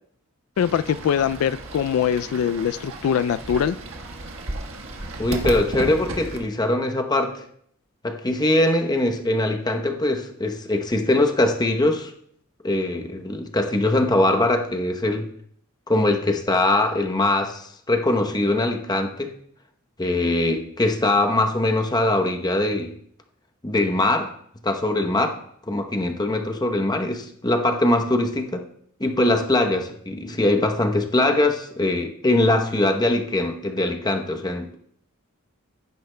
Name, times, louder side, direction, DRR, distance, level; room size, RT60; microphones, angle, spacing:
voice 1, 0.6-3.8, left 8 dB, 85° left, 16 dB, 0.3 m, -22 dB
Fowl / Bird, 0.6-6.4, right 1 dB, 70° right, 1.4 m, -33 dB
voice 2, 5.2-7.4 8.0-12.1 12.6-15.3 15.9-19.4 20.0-22.9 23.6-24.3 24.6-25.4 25.7-28.6 29.0-34.8, left 2 dB, 20° left, 4 dB, 0.8 m, -22 dB
15.5 x 9.3 x 2.2 m, 0.67 s
head